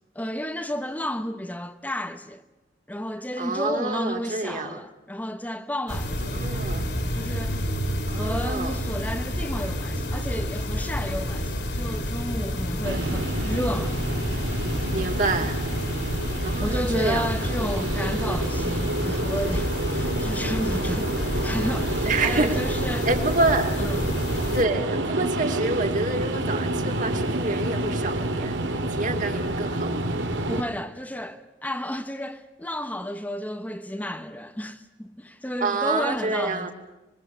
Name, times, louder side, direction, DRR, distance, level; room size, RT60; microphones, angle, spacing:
voice 1, 0.1-2.4 2.9-6.7 7.1-7.7 8.1-14.0 16.6-23.1 23.8-24.0 30.5-36.7, equal, 10° left, 1.0 m, -32 dB
voice 2, 3.4-4.8 6.2-7.0 8.1-8.8 14.7-15.6 16.4-17.4 22.1-22.6 23.0-23.8 24.5-30.2 35.6-36.7, right 3 dB, 45° right, 2.9 m, -28 dB
sound 1, 5.9-24.6, equal, 70° left, 4.5 m, -29 dB
sound 2, 12.8-30.6, right 1 dB, 85° right, 2.9 m, -29 dB
26.5 x 22.5 x 6.9 m
head